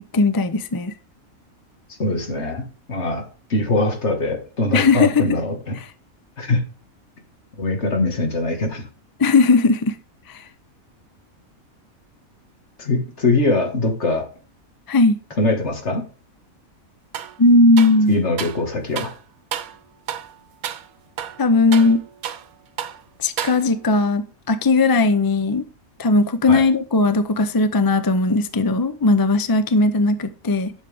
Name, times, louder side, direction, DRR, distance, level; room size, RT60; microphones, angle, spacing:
voice 1, 0.1-0.9 4.7-5.4 5.8-5.9 9.2-10.0 10.3-10.4 14.9-15.2 17.4-18.2 21.4-22.0 23.2-25.6 26.0-30.7, left 3 dB, 35° left, 0.3 m, -17 dB
voice 2, 2.0-5.7 6.4-6.6 7.6-8.8 12.8-14.3 15.4-16.0 18.1-19.1 26.5-26.6, left 2 dB, 50° left, 2.2 m, -22 dB
sound 1, 17.1-17.4 17.8-18.6 19.0-19.2 19.5-19.8 20.1-20.3 20.6-20.9 21.2-22.5 22.8-23.0 23.4-23.9, right 9 dB, 90° right, 1.2 m, -31 dB
11.0 x 6.4 x 3.5 m
omnidirectional pair, 1.5 m